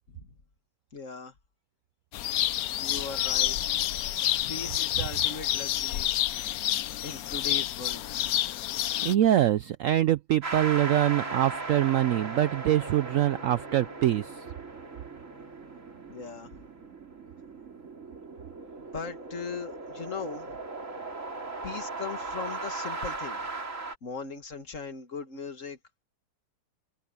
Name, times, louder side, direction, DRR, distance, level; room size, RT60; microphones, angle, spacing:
voice 1, 0.9-1.3 2.8-3.6 4.5-6.1 7.0-8.3 16.1-16.5 18.8-20.6 21.6-23.4 24.0-26.0, left 5 dB, 45° left, 2.0 m, -39 dB
sound 1, 2.1-9.1, left 13 dB, 65° left, 0.9 m, -29 dB
voice 2, 9.0-14.3, right 12 dB, 85° right, 0.7 m, -24 dB
sound 2, 10.4-23.9, right 3 dB, 45° right, 3.1 m, -38 dB
sound 3, 11.1-16.9, right 2 dB, 15° right, 3.4 m, -50 dB
omnidirectional pair, 1.9 m